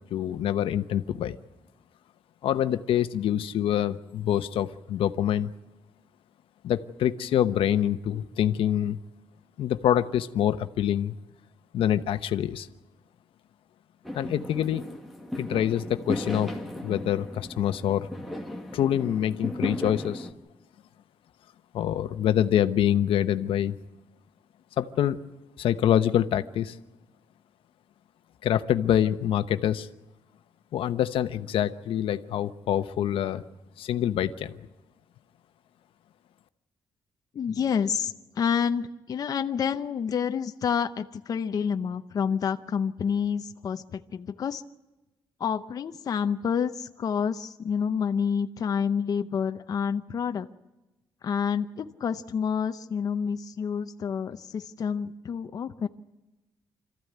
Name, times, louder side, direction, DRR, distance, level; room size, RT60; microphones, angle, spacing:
voice 1, 0.1-1.4 2.4-5.5 6.6-9.0 9.6-11.1 11.7-12.7 14.1-14.8 15.4-16.5 16.8-18.1 18.7-20.3 21.7-23.8 24.8-25.2 25.6-26.8 28.4-29.9 30.7-33.4 33.8-34.6, left 10 dB, 80° left, 10 dB, 0.9 m, -25 dB
Fireworks, 14.0-20.3, left 1 dB, ahead, 1.9 m, -36 dB
voice 2, 37.3-44.6 45.4-50.5 51.2-55.9, left 7 dB, 45° left, 8 dB, 0.7 m, -28 dB
26.0 x 14.5 x 9.3 m, 1.1 s
wide cardioid pair, 165°, 9 cm